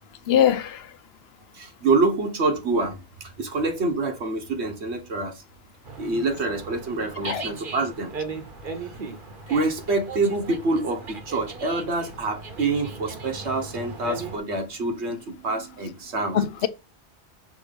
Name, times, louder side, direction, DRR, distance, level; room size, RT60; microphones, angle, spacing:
voice 1, 0.3-0.8 7.3-7.4 16.3-16.7, left 9 dB, 75° left, 0.8 m, -21 dB
voice 2, 1.5-3.0 3.2-5.4 6.0-8.1 9.5-16.4, right 3 dB, 85° right, 1.5 m, -26 dB
Dog, 5.8-14.4, right 4 dB, 50° right, 1.1 m, -37 dB
6.3 x 2.9 x 5.2 m
omnidirectional pair, 1.1 m